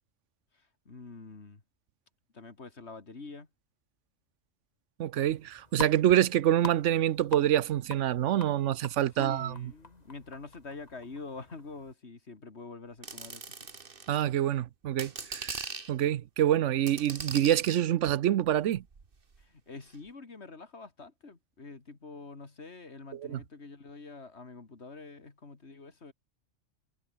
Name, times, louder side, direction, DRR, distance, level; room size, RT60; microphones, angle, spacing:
voice 1, 0.5-1.6 2.3-3.5 9.2-13.6 19.4-26.1, left 3 dB, 65° left, 2.7 m, -46 dB
voice 2, 5.0-9.5 14.1-18.8 23.3-23.4, right 12 dB, 85° right, 1.0 m, -26 dB
sound 1, 5.2-11.9, left 2 dB, 35° left, 2.7 m, -45 dB
sound 2, 13.0-14.2 14.8-15.9 16.9-17.8 18.7-19.4 19.9-20.0, right 4 dB, 50° right, 1.9 m, -40 dB
omnidirectional pair, 1.2 m